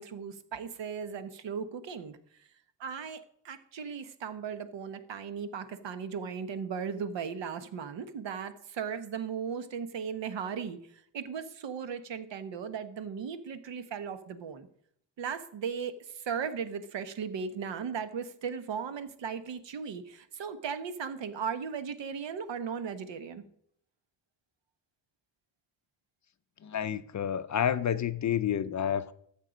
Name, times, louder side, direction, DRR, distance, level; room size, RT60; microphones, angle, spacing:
voice 1, 0.0-2.2 2.8-14.7 15.2-23.4, right 6 dB, 65° right, 1.2 m, -37 dB
voice 2, 26.6-29.1, left 9 dB, 40° left, 0.5 m, -29 dB
13.5 x 7.5 x 5.1 m
cardioid pair, 140°, 46 cm